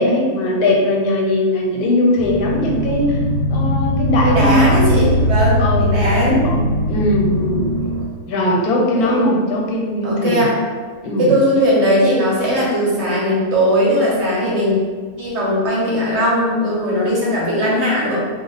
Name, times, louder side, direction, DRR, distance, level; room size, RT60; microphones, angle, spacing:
voice 1, 0.0-3.2 3.5-5.1 5.6-7.6 8.3-10.5 11.0-11.3, left 1 dB, 90° left, -1 dB, 1.2 m, -19 dB
sound 1, 2.2-8.1, equal, 85° right, 1.2 m, -19 dB
voice 2, 4.2-6.6 8.9-9.2 10.0-10.6 11.2-14.8 15.2-18.2, equal, 55° right, -5 dB, 0.9 m, -18 dB
2.4 x 2.3 x 4.0 m, 1.5 s
omnidirectional pair, 1.6 m